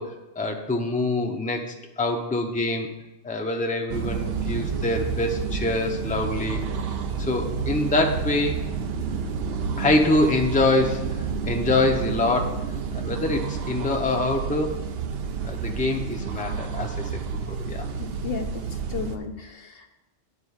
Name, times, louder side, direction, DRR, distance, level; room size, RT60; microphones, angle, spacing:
voice 1, 0.0-2.9 3.2-6.6 7.2-8.6 9.8-12.7 12.9-14.8 15.4-17.9, left 2 dB, 10° left, 2 dB, 0.7 m, -25 dB
sound 1, 3.9-19.2, right 5 dB, 65° right, 0.9 m, -30 dB
voice 2, 18.0-19.9, left 7 dB, 60° left, 5 dB, 1.0 m, -34 dB
9.7 x 4.4 x 7.2 m, 1.0 s
omnidirectional pair, 1.2 m